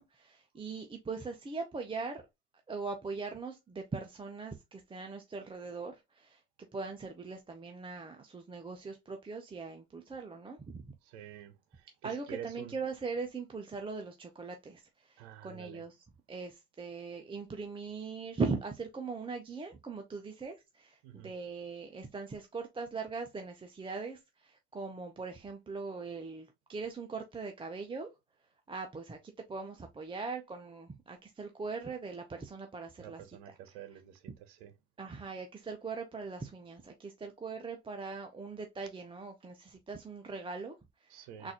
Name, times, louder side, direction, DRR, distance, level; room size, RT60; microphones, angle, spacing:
voice 1, 0.0-2.2 2.7-6.4 6.7-10.9 12.0-28.1 28.7-33.2 35.0-41.5, right 4 dB, 15° right, 0.6 m, -40 dB
voice 2, 11.0-12.8 15.2-15.8 21.0-21.3 33.0-34.7 41.1-41.5, right 10 dB, 80° right, 0.8 m, -48 dB
3.8 x 2.6 x 2.8 m
hypercardioid pair, 80°, 33 cm